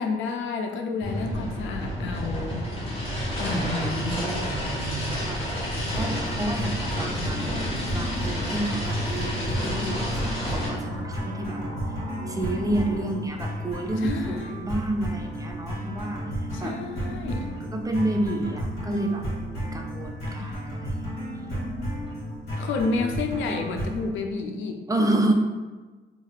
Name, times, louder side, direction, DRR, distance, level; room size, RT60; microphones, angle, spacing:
voice 1, 0.0-2.7 3.4-4.2 14.0-14.7 16.5-17.6 20.3-20.6 22.5-24.8, left 4 dB, 75° left, 4 dB, 0.4 m, -31 dB
sound 1, 1.0-10.7, equal, 30° left, 1.0 m, -30 dB
voice 2, 3.5-4.7 5.3-5.6 6.0-11.6 12.3-16.2 16.6-16.8 17.7-21.1 21.4-21.5 24.9-25.3, right 1 dB, 15° right, 2 dB, 0.4 m, -30 dB
sound 2, 3.5-14.3, right 1 dB, 80° right, 0.6 m, -41 dB
sound 3, 5.9-24.1, equal, 55° left, 1.3 m, -33 dB
2.8 x 2.4 x 3.1 m, 1.3 s
cardioid pair, 90°, 20 cm